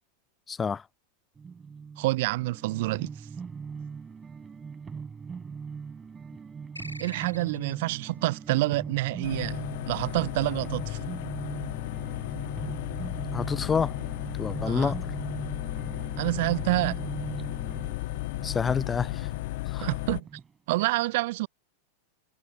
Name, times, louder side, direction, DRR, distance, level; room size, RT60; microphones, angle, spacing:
voice 1, 0.5-0.8 13.3-13.9 14.4-15.0 18.4-19.3 19.7-19.9, left 6 dB, 15° left, 0.7 m, -28 dB
sound 1, 1.4-20.5, right 5 dB, 15° right, 3.3 m, -40 dB
voice 2, 2.0-3.1 7.0-9.6 9.9-11.0 14.6-14.9 16.2-17.0 19.8-20.3 20.7-21.5, right 20 dB, 50° right, 0.5 m, -27 dB
sound 2, 6.7-7.9, equal, 90° left, 2.8 m, -43 dB
sound 3, 9.2-20.2, left 20 dB, 50° left, 1.3 m, -34 dB
figure-of-eight pair, 90°, 0 cm